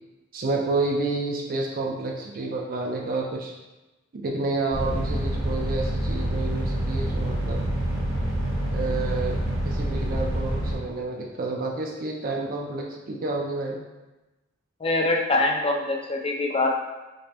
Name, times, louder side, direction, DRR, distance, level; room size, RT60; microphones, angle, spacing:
voice 1, 0.3-3.5 4.1-7.6 8.7-13.8, right 3 dB, 45° right, -1 dB, 0.4 m, -29 dB
sound 1, 4.7-10.7, right 1 dB, 15° right, 0.9 m, -27 dB
voice 2, 14.8-16.8, left 2 dB, 30° left, 1 dB, 0.4 m, -24 dB
5.2 x 2.1 x 2.8 m, 1.1 s
head